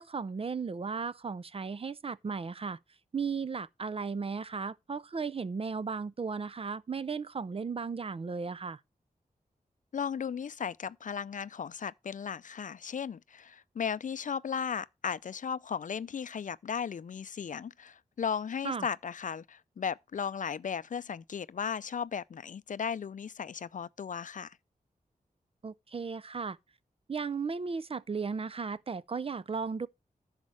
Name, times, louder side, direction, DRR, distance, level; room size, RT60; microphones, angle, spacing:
voice 1, 0.0-2.8 3.1-8.8 18.6-18.9 25.6-26.6 27.1-29.9, right 5 dB, 40° right, 0.4 m, -35 dB
voice 2, 9.9-24.6, left 7 dB, 60° left, 0.4 m, -36 dB
10.5 x 6.5 x 4.6 m
wide cardioid pair, 105°, 15 cm